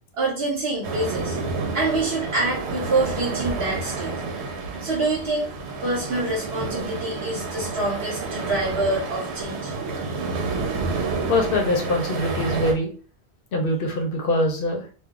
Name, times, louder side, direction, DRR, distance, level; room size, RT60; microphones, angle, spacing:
voice 1, 0.1-1.4 1.7-4.1 4.8-5.5 5.8-9.7, right 2 dB, 65° right, -4 dB, 1.1 m, -26 dB
sound 1, 0.8-12.7, right 4 dB, 90° right, 0.9 m, -29 dB
voice 2, 11.3-12.9 13.5-14.8, left 1 dB, 65° left, 3 dB, 0.8 m, -23 dB
2.3 x 2.3 x 3.6 m, 0.38 s
omnidirectional pair, 1.1 m